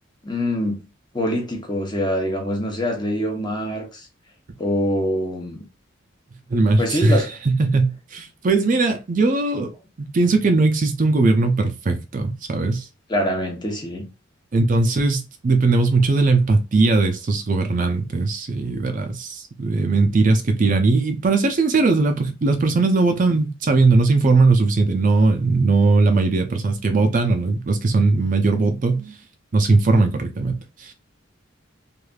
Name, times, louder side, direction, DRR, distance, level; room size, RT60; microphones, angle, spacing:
voice 1, 0.2-0.8 1.1-4.1 4.6-5.6 6.8-7.3 13.1-14.1, equal, 20° left, 0.8 m, -24 dB
voice 2, 6.5-9.7 10.0-12.9 14.5-29.2 29.5-30.9, right 3 dB, 40° right, 0.4 m, -19 dB
3.2 x 2.5 x 2.3 m
head